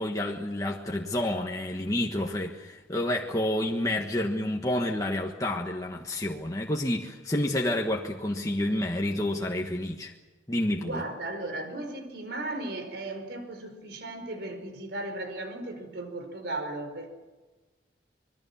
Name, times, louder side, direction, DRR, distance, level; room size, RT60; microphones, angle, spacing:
voice 1, 0.0-10.1 10.5-11.0, left 1 dB, 20° left, 1 dB, 1.5 m, -29 dB
voice 2, 10.8-17.1, right 2 dB, 65° right, 7 dB, 4.8 m, -36 dB
26.0 x 21.5 x 7.2 m, 1.2 s
head